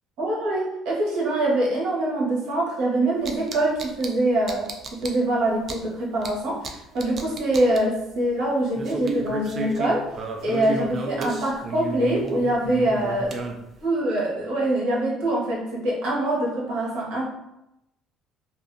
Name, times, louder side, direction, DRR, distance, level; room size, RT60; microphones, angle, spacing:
voice 1, 0.2-10.0 10.4-13.3 13.8-17.3, right 1 dB, 80° right, -4 dB, 1.1 m, -24 dB
sound 1, 3.2-4.1 4.5-5.1 5.7-5.8 6.2-6.3 6.6-6.7 7.0-7.8 8.8-13.8, right 3 dB, 35° right, 0.3 m, -32 dB
2.6 x 2.4 x 2.5 m, 0.88 s
cardioid pair, 135°, 0 cm